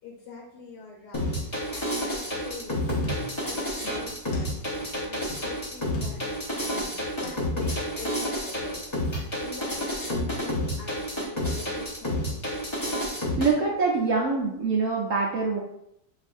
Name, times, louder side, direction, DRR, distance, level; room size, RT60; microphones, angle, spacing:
voice 1, 0.0-2.8 3.3-3.6 3.9-4.5 5.0-6.3 7.2-8.9 9.4-12.6, left 3 dB, 65° left, -1 dB, 1.2 m, -44 dB
sound 1, 1.1-13.5, equal, 35° left, 0.4 m, -30 dB
sound 2, 3.0-3.5 3.8-4.5 4.8-4.9 5.3-5.5 5.9-6.4 6.7-7.4 7.7-7.8, left 3 dB, 85° left, 1.5 m, -41 dB
voice 2, 13.2-15.6, right 4 dB, 75° right, -2 dB, 0.7 m, -25 dB
6.3 x 2.5 x 2.5 m, 0.77 s
omnidirectional pair, 2.1 m